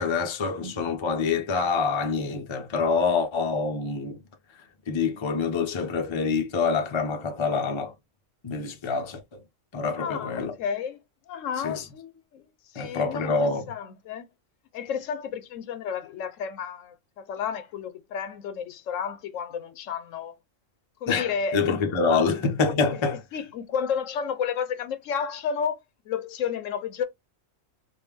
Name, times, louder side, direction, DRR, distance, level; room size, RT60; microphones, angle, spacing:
voice 1, 0.0-4.2 4.9-7.9 8.4-9.4 9.7-10.5 11.6-11.9 12.8-13.6 21.1-23.2, left 4 dB, 35° left, 0.5 m, -26 dB
voice 2, 10.0-11.0 11.3-12.4 12.7-14.3 14.7-20.4 21.0-22.3 23.3-27.0, left 7 dB, 80° left, 1.0 m, -32 dB
3.5 x 2.4 x 3.3 m
omnidirectional pair, 1.3 m